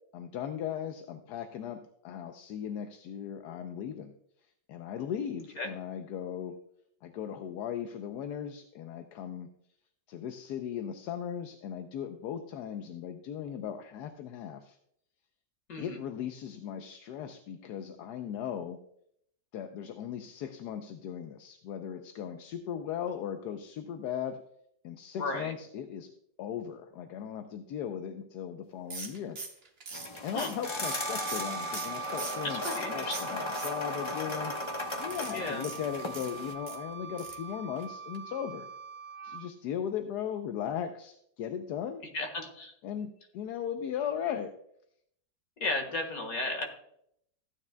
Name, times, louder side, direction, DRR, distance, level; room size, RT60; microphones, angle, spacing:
voice 1, 0.1-4.1 4.7-6.6 7.0-9.5 10.1-14.8 15.8-18.8 19.5-24.4 24.8-26.1 26.4-29.4 30.2-38.7 39.2-42.0 42.8-44.5, left 9 dB, 70° left, 7 dB, 1.1 m, -37 dB
voice 2, 15.7-16.0 25.2-25.5 30.3-30.5 32.4-33.4 35.3-35.7 42.1-42.7 45.6-46.7, left 2 dB, 55° left, 4 dB, 2.0 m, -34 dB
sound 1, 28.9-32.9 33.1-34.1 35.0-36.8 37.2-37.5 37.8-37.9 38.1-38.2, right 4 dB, 40° right, 1.2 m, -41 dB
sound 2, 29.9-36.5, left 2 dB, 35° left, 0.4 m, -37 dB
Wind instrument woodwind instrument, 30.8-39.5, right 6 dB, 70° right, 1.1 m, -42 dB
14.5 x 9.5 x 2.2 m, 0.72 s
omnidirectional pair, 1.9 m